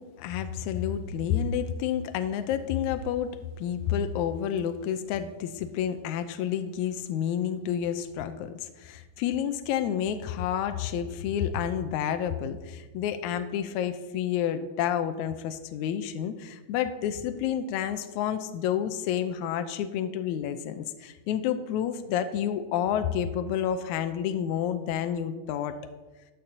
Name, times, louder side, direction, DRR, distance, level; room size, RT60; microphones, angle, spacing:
voice 1, 0.0-25.8, left 9 dB, 90° left, 9 dB, 1.7 m, -30 dB
15.5 x 11.5 x 2.8 m, 1.2 s
omnidirectional pair, 4.1 m